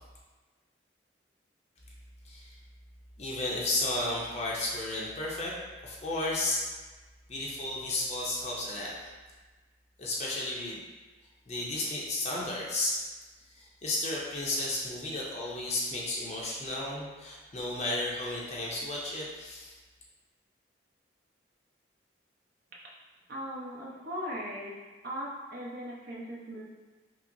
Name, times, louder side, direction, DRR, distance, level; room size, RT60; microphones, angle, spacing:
voice 1, 2.2-2.6 3.2-5.6 5.8-6.7 7.3-8.9 10.0-10.8 11.5-13.0 13.6-19.7, left 2 dB, 35° left, -4 dB, 0.6 m, -33 dB
voice 2, 23.3-24.7 25.0-26.6, equal, 55° right, -5 dB, 0.8 m, -38 dB
5.7 x 2.0 x 2.6 m, 1.3 s
head